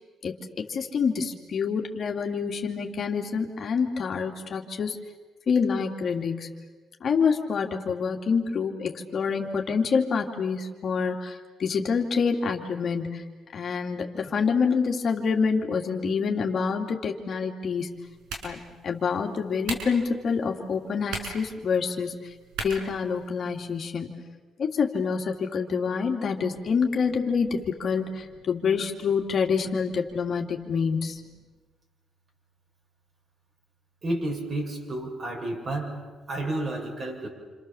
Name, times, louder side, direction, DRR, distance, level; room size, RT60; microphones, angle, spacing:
voice 1, 0.2-5.0 5.5-6.5 7.0-13.2 13.5-18.0 18.4-22.3 22.6-24.2 24.6-31.2, left 5 dB, 55° left, 2 dB, 2.9 m, -27 dB
sound 1, 17.8-23.8, right 3 dB, 90° right, 4.9 m, -40 dB
voice 2, 34.0-37.3, right 1 dB, 40° right, 2 dB, 6.7 m, -31 dB
29.0 x 27.0 x 7.2 m, 1.4 s
cardioid pair, 90°, 0 cm